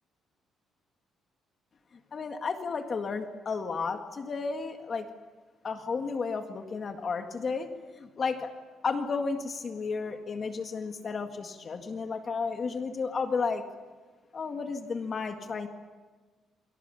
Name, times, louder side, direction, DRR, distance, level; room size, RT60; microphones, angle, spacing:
voice 1, 2.1-5.1 5.6-7.7 8.0-8.5 8.8-13.6 14.3-15.7, left 4 dB, 35° left, 5 dB, 1.9 m, -32 dB
28.5 x 24.0 x 7.0 m, 1.3 s
cardioid pair, 165°, 0 cm